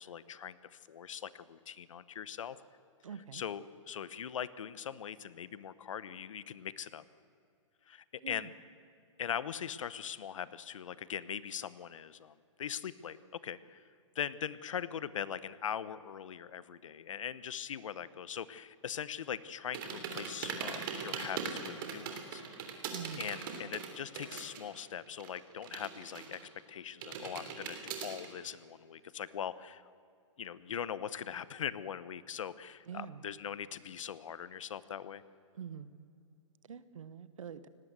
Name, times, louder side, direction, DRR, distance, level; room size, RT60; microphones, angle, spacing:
voice 1, 0.0-2.6 3.3-7.0 7.9-8.5 9.2-13.2 13.4-13.8 14.1-22.4 23.2-26.4 26.7-29.8 30.4-35.2, left 8 dB, 75° left, 17 dB, 0.9 m, -41 dB
voice 2, 3.0-3.4 8.2-8.5 22.9-23.2 32.9-33.2 35.6-35.9 36.7-37.7, right 8 dB, 85° right, 14 dB, 1.3 m, -45 dB
sound 1, 19.7-24.7 25.0-26.6 27.0-28.3, right 6 dB, 40° right, 3.2 m, -40 dB
18.5 x 17.5 x 8.1 m, 2.5 s
hypercardioid pair, 155°, 16 cm